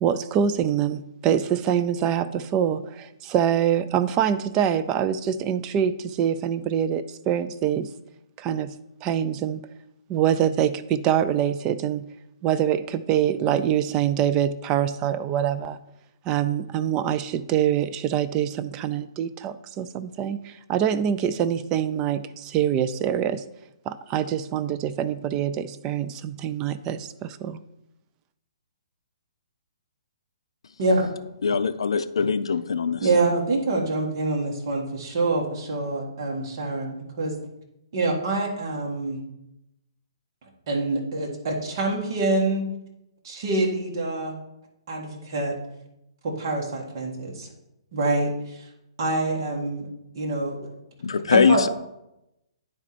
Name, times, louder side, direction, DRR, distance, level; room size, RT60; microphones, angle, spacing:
voice 1, 0.0-7.9 8.4-8.7 9.0-9.6 10.1-12.1 12.4-15.8 16.3-23.4 23.9-27.6, right 9 dB, 20° right, 12 dB, 0.3 m, -25 dB
voice 2, 30.8-31.1 33.0-37.4 37.9-39.2 40.7-42.7 43.2-44.3 44.9-45.6 46.2-47.5 47.9-48.6 49.0-49.9 50.1-50.7 51.3-51.6, right 2 dB, 45° right, -1 dB, 1.8 m, -26 dB
voice 3, 31.4-33.1 51.0-51.7, left 5 dB, 80° left, 9 dB, 0.4 m, -22 dB
9.6 x 4.4 x 4.1 m, 0.87 s
hypercardioid pair, 160°, 3 cm